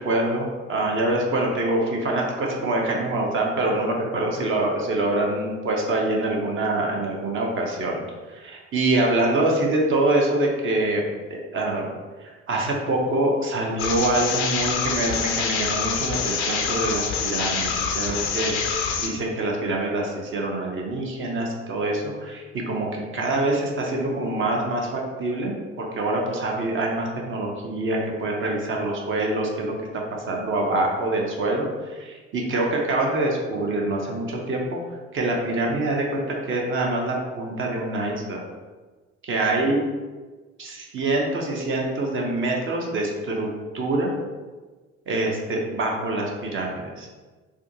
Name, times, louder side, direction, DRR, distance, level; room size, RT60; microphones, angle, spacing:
voice 1, 0.0-8.0 8.3-11.9 12.2-34.8 35.1-38.4 39.2-39.8 40.6-43.5 43.7-44.1 45.1-47.1, right 2 dB, 35° right, -1 dB, 0.7 m, -25 dB
sound 1, 13.8-19.1, left 6 dB, 65° left, 0.5 m, -26 dB
3.4 x 2.2 x 2.6 m, 1.3 s
figure-of-eight pair, 55°, 36 cm